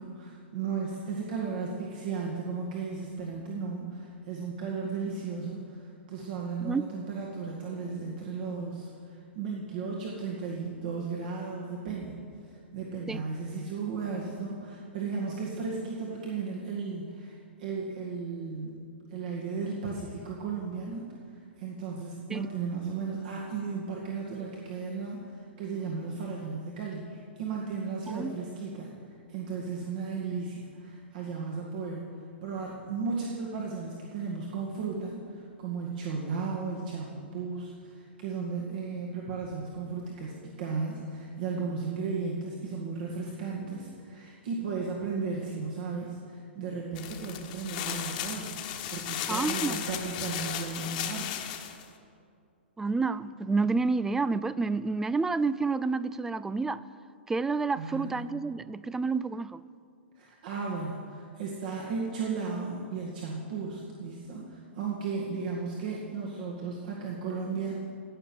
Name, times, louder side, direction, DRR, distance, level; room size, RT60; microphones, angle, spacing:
voice 1, 0.0-12.2 12.4-28.9 29.3-32.1 32.4-51.4 57.8-58.2 60.2-67.8, right 4 dB, 50° right, -2 dB, 2.1 m, -35 dB
sound 1, 46.9-51.8, left 10 dB, 45° left, 1.4 m, -35 dB
voice 2, 49.3-49.8 52.8-56.8 57.3-59.6, right 4 dB, 5° right, 17 dB, 0.3 m, -29 dB
17.5 x 6.8 x 9.2 m, 2.4 s
figure-of-eight pair, 110°, 6 cm